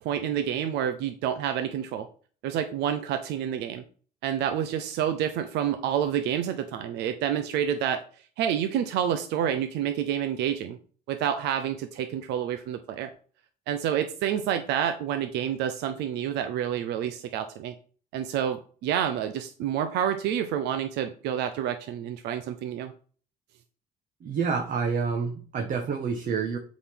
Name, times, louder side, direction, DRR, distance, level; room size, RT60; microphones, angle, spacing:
voice 1, 0.0-2.1 2.4-3.8 4.2-8.0 8.4-10.8 11.1-13.1 13.7-17.7 18.1-22.9, right 9 dB, 85° right, 8 dB, 0.8 m, -28 dB
voice 2, 24.2-26.6, right 5 dB, 55° right, 3 dB, 1.4 m, -28 dB
8.1 x 4.2 x 5.9 m, 0.42 s
cardioid pair, 110°, 17 cm